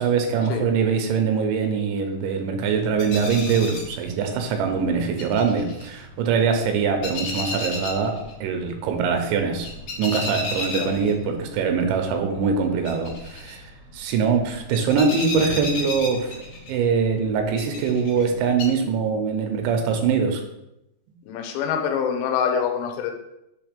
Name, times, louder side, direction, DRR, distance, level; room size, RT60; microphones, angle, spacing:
voice 1, 0.0-9.7 10.0-13.6 13.9-16.4 16.7-20.4, right 5 dB, 90° right, 4 dB, 3.1 m, -23 dB
sound 1, 2.7-18.6, left 2 dB, 60° left, 2.0 m, -35 dB
voice 2, 21.3-23.1, left 7 dB, 80° left, 4 dB, 2.9 m, -25 dB
6.9 x 3.1 x 5.0 m, 0.88 s
omnidirectional pair, 5.0 m